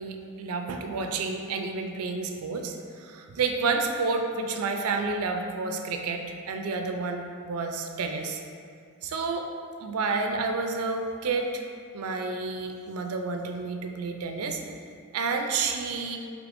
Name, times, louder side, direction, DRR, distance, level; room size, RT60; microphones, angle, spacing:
voice 1, 0.0-8.4 9.0-9.5 9.8-11.6 11.9-14.6 15.1-16.2, right 4 dB, 85° right, 4 dB, 0.4 m, -30 dB
5.0 x 3.2 x 2.5 m, 2.2 s
head